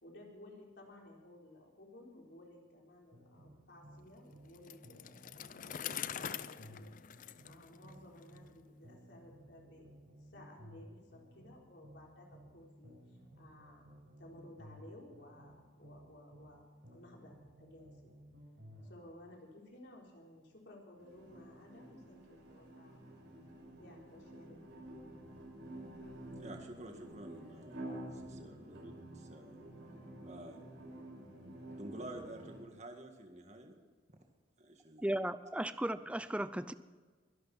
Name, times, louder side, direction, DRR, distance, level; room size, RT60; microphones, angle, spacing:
voice 1, 0.0-6.9 7.4-17.9 18.8-23.0 23.8-24.6, left 1 dB, 65° left, -1 dB, 4.2 m, -57 dB
sound 1, 3.1-4.6 4.8-8.6 8.8-12.6 12.8-16.6 16.8-18.9, equal, 70° right, 5.8 m, -56 dB
Bicycle, 4.5-8.4, left 9 dB, 45° left, 0.5 m, -44 dB
sound 2, 21.0-32.6, right 1 dB, 90° right, 6.3 m, -50 dB
voice 2, 26.4-29.7 30.2-30.7 31.7-33.8 34.1-34.2 34.6-35.0, right 1 dB, 35° right, 3 dB, 2.0 m, -50 dB
voice 3, 35.0-36.7, right 1 dB, 5° right, 13 dB, 0.5 m, -35 dB
23.5 x 12.0 x 4.4 m, 1.4 s
head